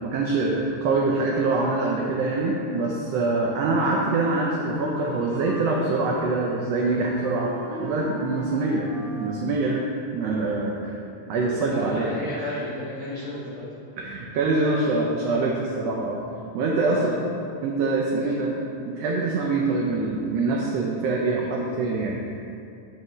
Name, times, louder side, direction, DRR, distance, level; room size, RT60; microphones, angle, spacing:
voice 1, 0.0-7.5 7.8-8.9 9.1-9.8 10.1-10.9 11.3-12.5 14.0-16.2 16.5-17.2 17.6-18.5 18.9-22.2, right 3 dB, 80° right, -2 dB, 1.5 m, -24 dB
Wind instrument woodwind instrument, 3.6-9.4, right 1 dB, 25° right, 0.8 m, -37 dB
voice 2, 11.6-13.7 16.7-17.2 18.2-18.4, left 2 dB, 75° left, -8 dB, 1.1 m, -33 dB
8.1 x 5.4 x 3.0 m, 2.6 s
omnidirectional pair, 3.4 m